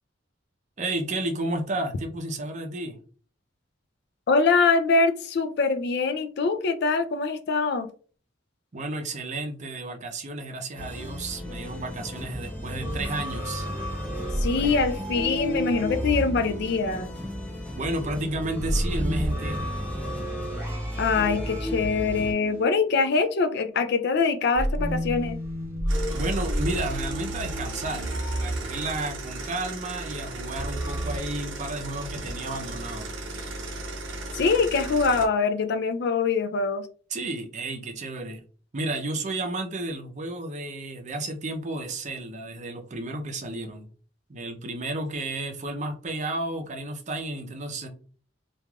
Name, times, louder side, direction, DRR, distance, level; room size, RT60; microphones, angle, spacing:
voice 1, 0.8-3.0 8.7-13.7 17.7-19.7 26.1-28.1 28.4-33.1 37.1-38.4 38.7-43.9 44.3-47.9, right 2 dB, 40° right, 0.5 m, -32 dB
voice 2, 4.3-7.9 14.4-17.1 21.0-25.4 34.3-36.9, left 4 dB, 60° left, 0.4 m, -24 dB
sound 1, 10.8-22.3, equal, 10° left, 0.6 m, -35 dB
sound 2, 12.8-17.4 18.6-23.3 24.6-29.2 30.6-31.2, equal, 15° right, 1.0 m, -31 dB
sound 3, 25.9-35.3, right 2 dB, 80° right, 0.7 m, -36 dB
3.1 x 2.4 x 2.3 m
head